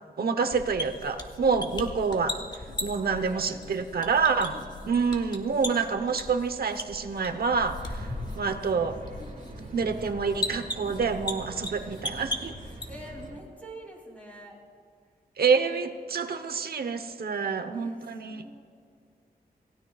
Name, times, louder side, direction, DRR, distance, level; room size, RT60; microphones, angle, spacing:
voice 1, 0.2-2.4 2.8-4.6 4.8-9.0 9.7-12.5 15.4-18.4, right 5 dB, 75° right, 9 dB, 1.0 m, -27 dB
sound 1, 0.5-13.3, left 2 dB, 25° left, 1.5 m, -38 dB
voice 2, 2.9-5.1 7.8-8.0 11.8-14.5 17.4-18.6, right 1 dB, 10° left, -2 dB, 3.0 m, -48 dB
sound 2, 8.0-13.4, right 2 dB, 50° right, 1.8 m, -44 dB
27.5 x 16.5 x 2.4 m, 2.2 s
wide cardioid pair, 130°, 16 cm